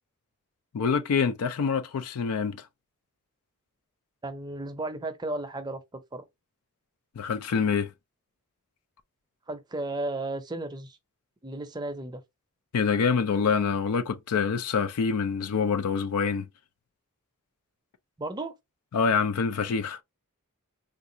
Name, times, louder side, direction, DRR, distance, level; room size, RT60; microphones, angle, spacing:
voice 1, 0.7-2.6 7.2-7.9 12.7-16.5 18.9-20.0, left 6 dB, 80° left, 0.4 m, -26 dB
voice 2, 4.2-5.8 6.1-6.2 9.5-11.0 11.4-12.2 18.2-18.5, right 2 dB, 20° right, 0.5 m, -34 dB
3.8 x 2.4 x 2.6 m
head